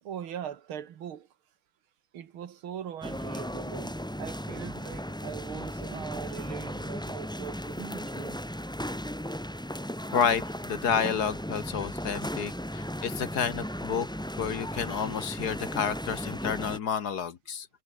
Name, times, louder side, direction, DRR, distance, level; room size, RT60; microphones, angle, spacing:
voice 1, 0.0-1.3 2.1-8.4, right 9 dB, 80° right, 2.3 m, -41 dB
sound 1, 3.0-16.8, equal, ahead, 1.6 m, -36 dB
voice 2, 10.1-14.1 14.4-17.7, left 7 dB, 55° left, 1.6 m, -30 dB
omnidirectional pair, 2.2 m